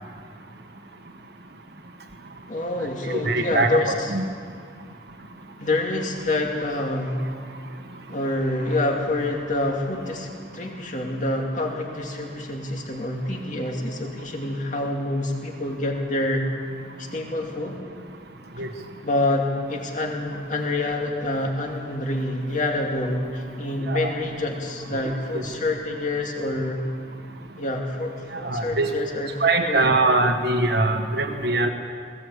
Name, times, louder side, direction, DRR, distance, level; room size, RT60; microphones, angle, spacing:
voice 1, 2.5-4.1 5.6-7.2 8.1-16.5 17.0-17.8 19.0-26.8 27.6-29.9, left 2 dB, 40° left, 1 dB, 2.5 m, -27 dB
voice 2, 3.1-4.3 18.6-18.7 23.9-24.1 25.3-25.4 28.4-28.9 29.4-31.7, right 2 dB, 55° right, 4 dB, 1.4 m, -22 dB
19.5 x 17.0 x 8.1 m, 2.1 s
head